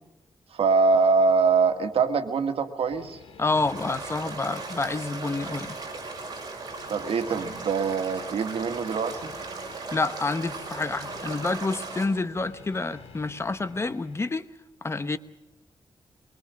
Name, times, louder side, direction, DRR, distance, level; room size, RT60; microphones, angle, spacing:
voice 1, 0.5-3.2 6.9-9.3, right 5 dB, 80° right, 2.0 m, -23 dB
sound 1, 2.9-14.2, left 5 dB, 90° left, 2.1 m, -50 dB
voice 2, 3.4-5.8 9.9-14.5 14.8-15.2, left 3 dB, 25° left, 1.0 m, -28 dB
sound 2, 3.5-12.1, right 3 dB, 40° right, 5.5 m, -37 dB
23.0 x 22.5 x 6.5 m
wide cardioid pair, 125°, 10 cm